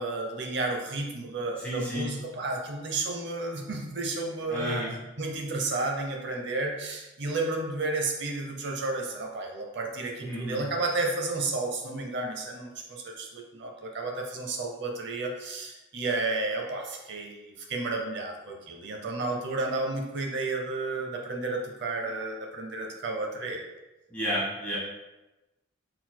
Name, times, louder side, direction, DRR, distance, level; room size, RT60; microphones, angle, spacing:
voice 1, 0.0-4.9 5.2-23.6, right 2 dB, 60° right, 2 dB, 0.7 m, -32 dB
voice 2, 1.6-2.1 4.5-4.9 10.2-10.6 24.1-24.8, equal, 10° left, -9 dB, 1.1 m, -31 dB
4.5 x 3.9 x 2.2 m, 1.0 s
head